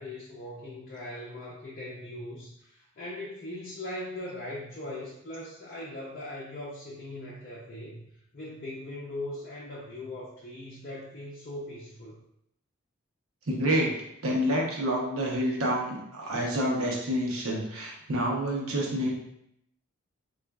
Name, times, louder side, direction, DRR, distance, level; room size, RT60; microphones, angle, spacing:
voice 1, 0.0-8.0 8.3-12.2, left 1 dB, 40° left, -6 dB, 0.5 m, -40 dB
voice 2, 13.5-13.9 14.2-19.1, equal, 75° right, -2 dB, 0.8 m, -28 dB
4.0 x 2.4 x 2.3 m, 0.75 s
head